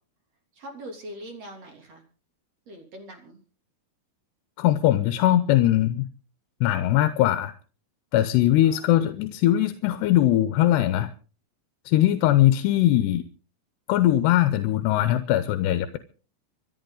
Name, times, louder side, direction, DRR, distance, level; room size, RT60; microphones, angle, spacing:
voice 1, 0.5-2.0 2.7-3.4 8.6-8.9, equal, 40° right, 3 dB, 3.8 m, -42 dB
voice 2, 4.6-6.1 6.6-7.5 8.1-11.1 11.9-13.2 13.9-16.0, left 13 dB, 85° left, 11 dB, 3.0 m, -21 dB
26.0 x 11.0 x 4.0 m, 0.38 s
omnidirectional pair, 4.7 m